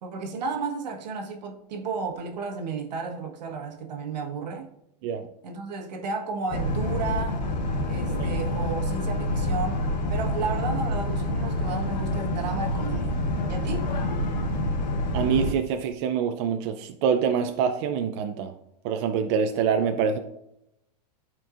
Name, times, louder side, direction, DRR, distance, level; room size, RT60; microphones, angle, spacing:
voice 1, 0.0-4.7 5.4-7.4 7.9-9.8 10.1-13.2 13.5-13.9, right 4 dB, 80° right, 4 dB, 1.3 m, -33 dB
Boat Water vehicle, 6.5-15.5, left 1 dB, 90° left, 1.1 m, -27 dB
voice 2, 15.1-18.5 18.8-20.2, right 7 dB, 45° right, 6 dB, 0.5 m, -25 dB
11.5 x 4.5 x 2.5 m, 0.85 s
supercardioid pair, 150°, 21 cm